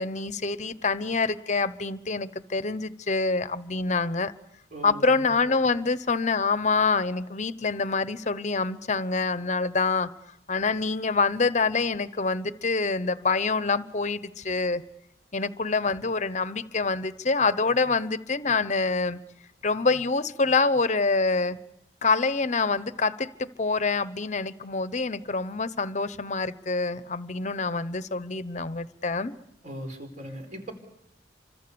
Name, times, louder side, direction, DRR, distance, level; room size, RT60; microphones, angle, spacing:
voice 1, 0.0-4.3 4.8-10.1 10.5-14.8 15.3-19.2 19.6-21.6 22.0-29.3, left 4 dB, 40° left, 14 dB, 0.9 m, -26 dB
voice 2, 4.7-5.3 29.6-30.7, right 1 dB, 45° right, 5 dB, 4.8 m, -39 dB
29.0 x 25.5 x 7.0 m, 0.87 s
head